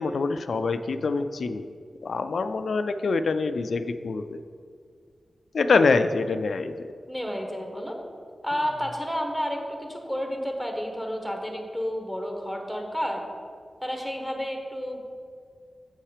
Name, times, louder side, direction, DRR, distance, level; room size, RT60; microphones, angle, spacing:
voice 1, 0.0-1.7 2.0-4.4 5.5-6.9, left 4 dB, 75° left, 10 dB, 0.3 m, -25 dB
voice 2, 7.1-7.9 8.4-13.3 13.8-15.0, equal, ahead, 2 dB, 1.2 m, -31 dB
7.3 x 5.6 x 5.0 m, 2.1 s
wide cardioid pair, 85°, 0 cm